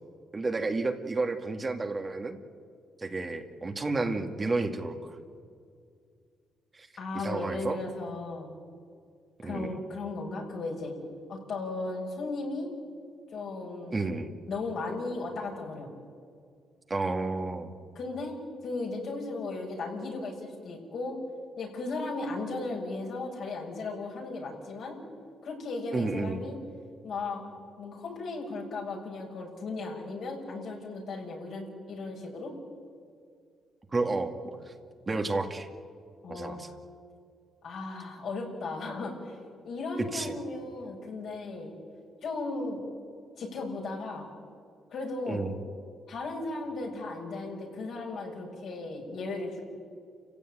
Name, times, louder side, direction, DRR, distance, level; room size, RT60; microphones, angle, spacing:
voice 1, 0.3-2.4 3.0-5.2 6.7-6.9 7.2-7.8 9.4-9.8 13.9-14.3 16.9-17.7 25.9-26.4 33.9-34.7 35.1-35.7 36.3-36.7 40.1-40.3 45.3-45.6, right 3 dB, 25° right, 5 dB, 2.1 m, -31 dB
voice 2, 7.0-8.5 9.4-10.9 11.3-12.7 13.3-14.0 14.5-15.9 17.9-18.4 18.6-21.2 21.6-25.0 25.4-26.6 27.0-27.4 27.8-32.5 36.2-36.6 37.6-39.4 39.6-41.7 42.2-42.8 43.4-44.3 44.9-45.4 46.1-49.6, left 3 dB, 65° left, 0 dB, 6.6 m, -36 dB
29.5 x 16.0 x 9.2 m, 2.2 s
cardioid pair, 90°, 0 cm